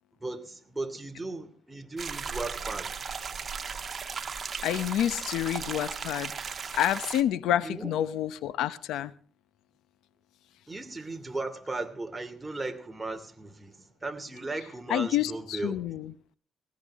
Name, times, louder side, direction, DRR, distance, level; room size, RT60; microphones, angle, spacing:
voice 1, 0.2-3.0 7.6-7.9 10.7-15.8, right 2 dB, 15° right, 2.7 m, -36 dB
sound 1, 2.0-7.2, right 6 dB, 40° right, 1.4 m, -36 dB
voice 2, 4.6-6.3 6.7-9.1 14.9-16.1, left 11 dB, 90° left, 0.8 m, -28 dB
19.5 x 18.0 x 3.6 m
cardioid pair, 90°, 0 cm